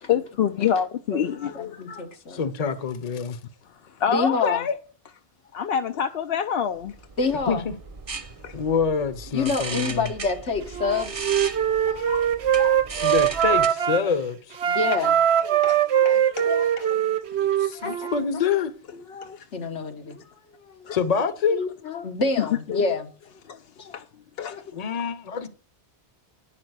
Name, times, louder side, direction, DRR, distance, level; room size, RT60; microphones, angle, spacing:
voice 1, 0.1-2.1 4.0-4.7 5.5-6.9 8.4-8.5 11.6-12.3 12.5-12.8 14.9-15.0 15.4-16.9 19.1-19.4 20.9-21.0 22.4-23.0 23.5-23.6 23.9-24.0 24.4-24.6, left 8 dB, 65° left, 0.8 m, -27 dB
voice 2, 1.6-2.4 4.1-4.7 7.2-7.6 9.3-11.3 13.0-13.1 14.7-15.2 16.0-16.2 17.8-18.1 19.5-21.0 21.5-23.1 23.8-23.9 24.5-24.6, left 4 dB, 80° left, 1.6 m, -28 dB
voice 3, 2.3-3.4 7.5-7.7 8.5-10.1 13.0-14.6 16.1-18.7 20.9-21.6 24.7-25.5, left 6 dB, 35° left, 0.9 m, -27 dB
sound 1, 6.9-13.7, right 4 dB, 30° right, 0.9 m, -37 dB
Wind instrument woodwind instrument, 10.7-14.1 14.5-18.2, right 10 dB, 70° right, 1.0 m, -22 dB
9.9 x 5.9 x 7.9 m
omnidirectional pair, 1.2 m